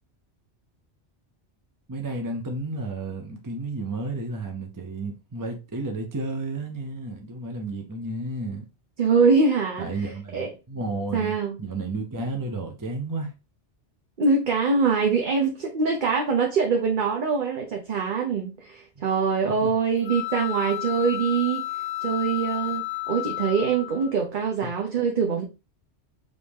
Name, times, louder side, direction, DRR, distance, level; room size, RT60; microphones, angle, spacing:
voice 1, 1.9-8.7 9.8-13.3 19.6-19.7, right 2 dB, 25° right, 0.5 m, -32 dB
voice 2, 9.0-9.9 10.3-10.5 11.1-11.6 14.2-21.6 22.0-25.4, right 5 dB, 50° right, 0.8 m, -23 dB
sound 1, 20.0-24.1, left 18 dB, 65° left, 0.8 m, -32 dB
5.0 x 2.7 x 3.4 m
omnidirectional pair, 1.2 m